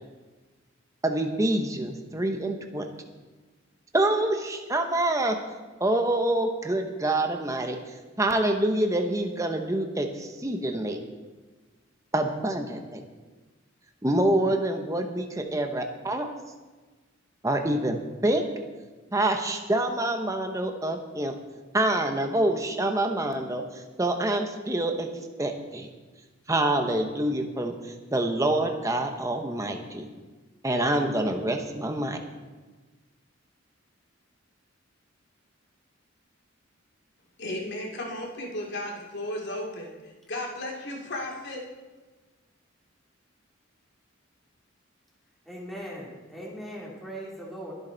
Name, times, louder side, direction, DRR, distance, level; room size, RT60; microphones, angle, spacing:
voice 1, 1.0-2.9 3.9-5.4 5.8-7.8 8.2-11.0 12.1-13.0 14.0-16.3 17.4-18.4 19.1-21.3 21.7-25.1 25.4-25.9 26.5-27.7 28.1-30.1 30.6-32.2, right 1 dB, 15° right, 4 dB, 1.0 m, -26 dB
voice 2, 37.4-39.9 40.3-41.7, left 1 dB, 60° left, -1 dB, 2.7 m, -34 dB
voice 3, 45.5-47.7, equal, ahead, -4 dB, 2.9 m, -39 dB
22.5 x 7.6 x 4.0 m, 1.3 s
head